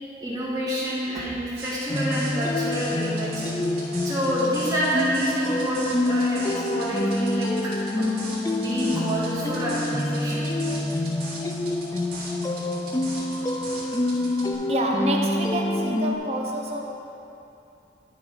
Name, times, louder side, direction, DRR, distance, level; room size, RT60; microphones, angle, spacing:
voice 1, 0.2-3.4 4.0-8.2 8.6-10.5, equal, 20° right, -8 dB, 1.9 m, -28 dB
sound 1, 1.6-14.5, right 2 dB, 60° right, 2.2 m, -40 dB
sound 2, 1.9-16.2, left 1 dB, 20° left, 0.3 m, -27 dB
voice 2, 14.7-16.8, right 1 dB, 35° right, 0 dB, 0.8 m, -27 dB
11.5 x 4.1 x 5.7 m, 2.8 s
head